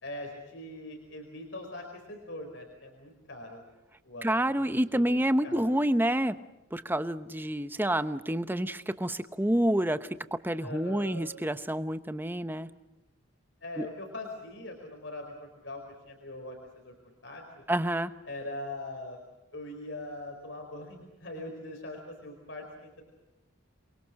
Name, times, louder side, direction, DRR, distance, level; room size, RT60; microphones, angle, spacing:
voice 1, 0.0-3.6 4.0-4.3 4.6-5.6 10.6-11.2 13.6-15.3 15.6-16.6 16.8-16.9 17.2-17.6 18.2-19.2 19.5-23.0, left 1 dB, 60° left, 2 dB, 4.8 m, -41 dB
voice 2, 4.2-6.4 6.7-10.0 10.4-12.7 13.8-13.9 17.7-18.1, right 1 dB, 10° right, 11 dB, 0.9 m, -28 dB
28.0 x 23.0 x 6.5 m, 1.0 s
head